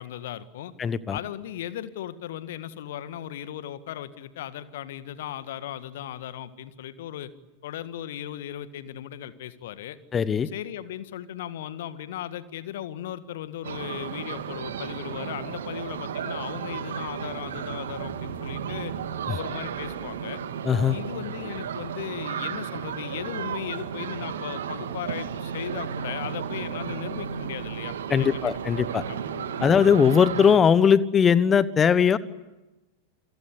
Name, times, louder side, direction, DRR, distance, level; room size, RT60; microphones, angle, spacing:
voice 1, 0.0-0.7 1.1-7.3 7.6-10.0 10.5-18.9 19.4-20.4 20.9-28.6 29.1-29.2 29.5-29.7, left 11 dB, 55° left, 13 dB, 1.8 m, -37 dB
voice 2, 0.8-1.2 10.1-10.5 19.3-19.4 20.6-21.0 28.1-29.0 29.6-32.2, left 7 dB, 20° left, 17 dB, 1.3 m, -20 dB
sound 1, 13.6-30.6, right 7 dB, 65° right, 2.2 m, -33 dB
28.5 x 24.5 x 8.5 m, 1.1 s
figure-of-eight pair, 90°, 0 cm